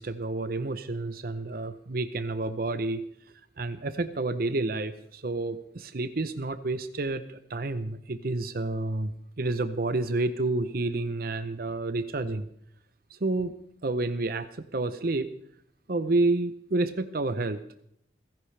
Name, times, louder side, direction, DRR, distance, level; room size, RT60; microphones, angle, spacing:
voice 1, 0.0-3.0 3.6-12.5 13.1-13.5 13.8-15.3 15.9-17.6, right 2 dB, 55° right, 12 dB, 0.7 m, -29 dB
28.5 x 10.5 x 3.3 m, 0.71 s
head